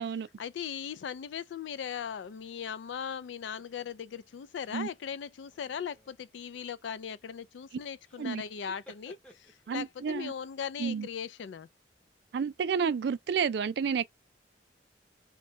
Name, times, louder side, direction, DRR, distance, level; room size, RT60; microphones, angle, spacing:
voice 1, 0.4-11.7, left 7 dB, 80° left, 0.3 m, -39 dB
sound 1, 3.6-3.9 4.6-4.9 5.4-6.2 8.0-8.3 8.6-9.9, right 1 dB, 5° left, 0.6 m, -57 dB
voice 2, 9.7-10.3 10.8-11.1 12.3-14.0, right 6 dB, 60° right, 0.3 m, -30 dB
2.7 x 2.2 x 3.0 m
head